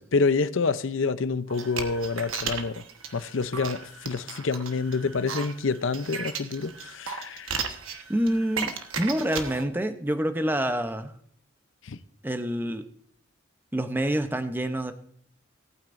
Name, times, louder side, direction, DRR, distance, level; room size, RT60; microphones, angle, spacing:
voice 1, 0.1-2.8 3.1-7.6 11.8-12.0, left 4 dB, 70° left, 0.6 m, -27 dB
sound 1, 1.5-9.6, right 5 dB, 80° right, 1.3 m, -35 dB
voice 2, 8.1-11.1 12.2-12.9 13.7-14.9, right 1 dB, 10° right, 0.7 m, -27 dB
19.0 x 8.9 x 2.6 m
head